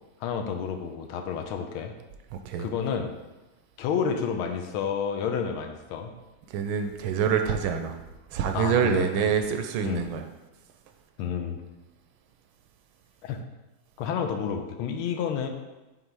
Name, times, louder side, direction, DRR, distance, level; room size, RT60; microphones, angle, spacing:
voice 1, 0.2-1.9 2.6-3.1 3.8-6.1 8.5-9.1 9.8-10.0 11.2-11.6 13.2-13.4 14.0-15.5, left 7 dB, 85° left, 6 dB, 1.5 m, -30 dB
voice 2, 2.3-2.7 6.5-8.0 8.3-10.3, right 7 dB, 80° right, 6 dB, 1.4 m, -26 dB
5.5 x 3.9 x 4.6 m, 1.1 s
omnidirectional pair, 2.3 m